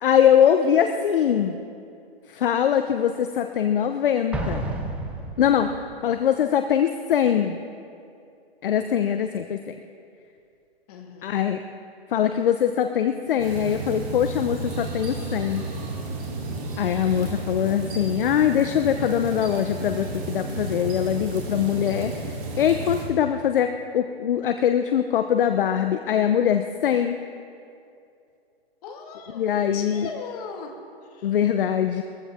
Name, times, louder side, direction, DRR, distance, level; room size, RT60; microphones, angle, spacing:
voice 1, 0.0-1.5 2.3-4.7 5.4-5.7 6.0-7.6 8.6-9.7 11.2-11.6 12.1-15.7 16.8-27.2 29.3-30.1 31.2-32.0, left 9 dB, 55° left, 8 dB, 0.7 m, -22 dB
Explosion, 4.3-6.0, right 2 dB, 5° right, 0.5 m, -31 dB
voice 2, 10.9-11.5 28.8-30.7 31.1-31.3, left 5 dB, 35° left, 3 dB, 1.9 m, -39 dB
sound 1, 13.4-23.0, right 2 dB, 30° right, 3.3 m, -32 dB
21.0 x 15.0 x 3.6 m, 2.5 s
hypercardioid pair, 145°, 31 cm